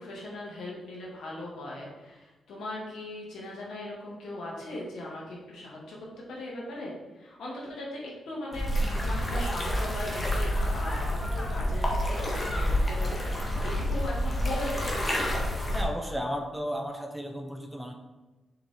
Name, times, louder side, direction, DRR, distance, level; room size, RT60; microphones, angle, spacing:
voice 1, 0.0-6.0 6.3-15.2, left 1 dB, 85° left, -4 dB, 2.3 m, -39 dB
sound 1, 8.5-15.8, equal, 25° left, 1.6 m, -28 dB
voice 2, 15.7-17.9, equal, ahead, 3 dB, 0.8 m, -34 dB
6.9 x 5.2 x 3.8 m, 1.1 s
cardioid pair, 105°, 0 cm